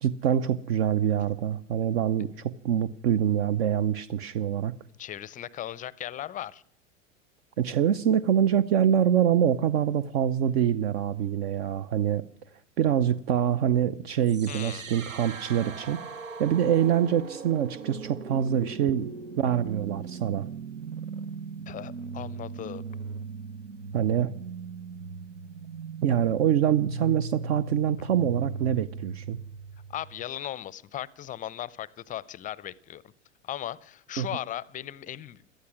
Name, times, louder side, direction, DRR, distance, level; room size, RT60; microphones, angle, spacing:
voice 1, 0.0-4.7 7.6-12.2 12.8-16.0 16.4-19.1 19.4-20.5 23.9-24.3 26.0-29.4 34.2-34.3, right 9 dB, 55° right, 0.8 m, -25 dB
voice 2, 5.0-6.6 14.5-14.9 21.7-22.8 29.9-33.0 33.4-35.4, left 12 dB, 20° left, 0.5 m, -37 dB
sound 1, 14.2-30.2, right 4 dB, 85° right, 0.9 m, -39 dB
18.0 x 13.0 x 6.2 m
figure-of-eight pair, 85°, 38 cm